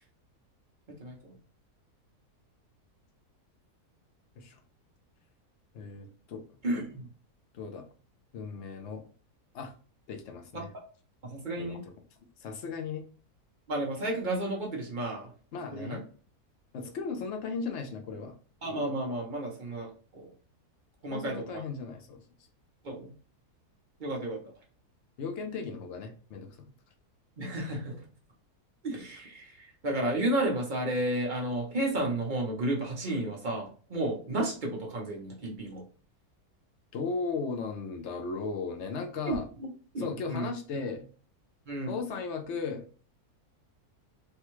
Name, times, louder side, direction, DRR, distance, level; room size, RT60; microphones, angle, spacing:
voice 1, 1.0-1.3 6.6-7.1 11.2-11.8 13.7-15.3 15.7-16.0 18.6-20.3 21.0-21.6 22.8-23.1 24.0-24.4 27.4-28.0 28.8-35.8 39.3-39.7 39.9-40.5 41.7-42.0, right 1 dB, 45° right, -1 dB, 0.7 m, -32 dB
voice 2, 5.7-6.4 7.5-7.8 8.3-9.0 9.5-9.7 10.1-10.7 11.6-11.9 12.4-13.0 15.5-16.0 16.7-18.3 21.1-22.2 25.2-26.5 36.9-39.5 40.0-41.1 41.9-42.9, left 4 dB, 65° left, 4 dB, 0.7 m, -36 dB
3.4 x 2.2 x 3.0 m, 0.40 s
omnidirectional pair, 1.7 m